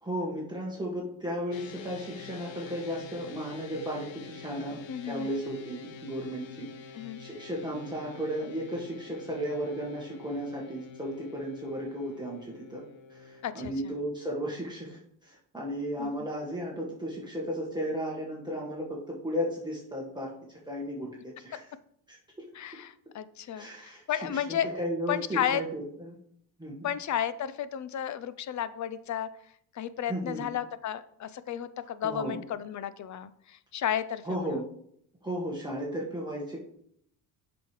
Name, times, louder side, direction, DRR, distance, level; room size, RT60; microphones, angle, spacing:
voice 1, 0.0-12.8 13.1-21.1 21.4-21.7 22.1-22.2 23.5-26.1 26.6-26.9 30.1-30.5 32.0-32.4 34.2-34.6 35.2-36.6, equal, 10° right, -4 dB, 1.4 m, -35 dB
sound 1, 1.5-13.7, left 5 dB, 65° left, 1.0 m, -47 dB
voice 2, 4.9-5.3 6.9-7.2 13.4-13.9 16.0-16.1 22.5-25.6 26.8-29.3 29.8-34.5, left 10 dB, 40° left, 15 dB, 0.5 m, -33 dB
8.0 x 6.1 x 3.2 m, 0.70 s
cardioid pair, 95°, 47 cm